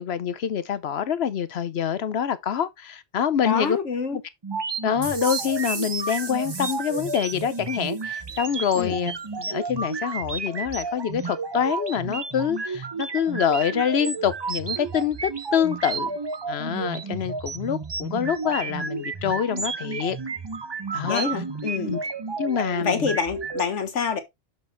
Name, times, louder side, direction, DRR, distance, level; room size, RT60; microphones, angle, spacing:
voice 1, 0.0-3.8 4.1-4.2 4.8-9.1 9.4-16.1 16.5-20.2 20.9-21.3 21.9-22.0 22.4-23.1, left 8 dB, 65° left, 0.9 m, -26 dB
voice 2, 3.4-4.2 8.7-9.0 21.0-21.9 22.8-24.2, left 5 dB, 85° left, 1.7 m, -26 dB
sound 1, 4.4-23.6, right 4 dB, 25° right, 0.6 m, -32 dB
sound 2, 5.0-8.0, right 3 dB, 60° right, 2.0 m, -37 dB
6.9 x 6.4 x 3.4 m
omnidirectional pair, 1.2 m